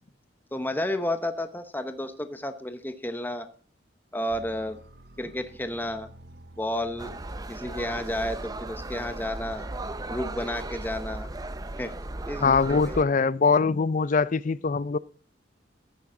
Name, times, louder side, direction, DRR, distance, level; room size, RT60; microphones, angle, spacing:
voice 1, 0.5-3.5 4.1-4.8 5.2-6.1 6.6-7.1 7.5-9.7 10.1-11.3 11.8-11.9 12.3-13.2, left 1 dB, 10° left, 0.9 m, -32 dB
sound 1, 4.3-8.1, right 1 dB, 55° right, 1.0 m, -50 dB
sound 2, 7.0-13.0, right 2 dB, 20° right, 0.6 m, -36 dB
voice 2, 12.4-15.0, left 4 dB, 40° left, 0.4 m, -22 dB
14.5 x 9.6 x 3.9 m
head